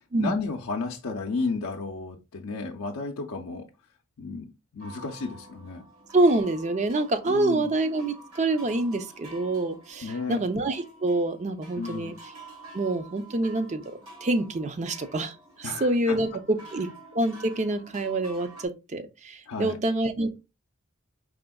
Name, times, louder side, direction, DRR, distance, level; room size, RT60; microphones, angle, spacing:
voice 1, 0.2-3.7 4.2-5.8 7.3-7.7 10.0-10.4 11.8-12.1 15.6-16.2 19.5-19.8, left 4 dB, 75° left, 0.5 m, -33 dB
sound 1, 4.8-18.7, right 2 dB, 65° right, 1.6 m, -48 dB
voice 2, 6.1-12.1 12.7-13.8 14.2-16.9 17.1-20.4, right 2 dB, 30° right, 0.5 m, -26 dB
4.9 x 3.4 x 2.2 m
head